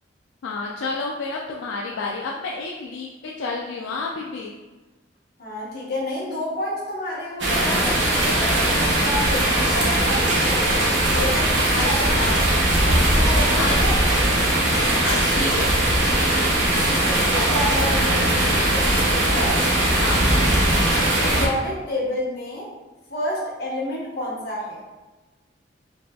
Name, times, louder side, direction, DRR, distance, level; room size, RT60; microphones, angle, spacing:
voice 1, 0.4-4.5 11.7-12.5 13.6-13.8 15.0-15.9 20.0-20.2, left 3 dB, 80° left, -2 dB, 0.4 m, -30 dB
voice 2, 5.4-10.6 11.0-12.4 12.8-13.9 16.8-19.6 21.2-22.7 23.1-24.8, left 1 dB, 50° left, -6 dB, 1.0 m, -29 dB
sound 1, 7.4-21.5, right 1 dB, 70° right, 0.7 m, -20 dB
4.0 x 3.1 x 2.2 m, 1.2 s
head